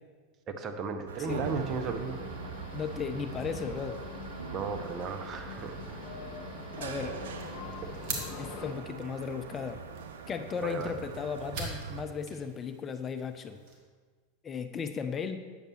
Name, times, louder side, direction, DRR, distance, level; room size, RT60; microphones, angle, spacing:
voice 1, 0.5-2.3 4.5-6.1 10.6-10.9, right 4 dB, 35° right, 6 dB, 0.7 m, -35 dB
sound 1, 1.1-12.0, right 6 dB, 70° right, 0.5 m, -42 dB
sound 2, 1.4-8.7, left 5 dB, 45° left, 1.2 m, -44 dB
voice 2, 2.7-4.0 6.8-7.2 8.4-9.8 10.3-13.6 14.4-15.4, left 6 dB, 25° left, 8 dB, 0.4 m, -35 dB
sound 3, 7.3-13.8, right 3 dB, 50° right, 1.4 m, -44 dB
8.7 x 6.5 x 3.1 m, 1.5 s
figure-of-eight pair, 85°, 0 cm